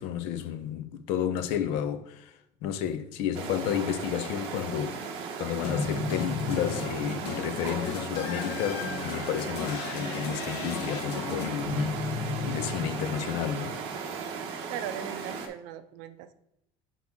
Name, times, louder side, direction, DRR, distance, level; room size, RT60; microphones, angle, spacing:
voice 1, 0.0-2.3 2.6-13.8, left 9 dB, 60° left, 0.6 m, -32 dB
sound 1, 3.3-15.5, right 6 dB, 55° right, 1.0 m, -36 dB
sound 2, 5.6-13.9, left 5 dB, 85° left, 1.1 m, -34 dB
voice 2, 14.7-16.3, right 11 dB, 70° right, 0.6 m, -39 dB
6.1 x 5.5 x 3.6 m
cardioid pair, 175°, 12 cm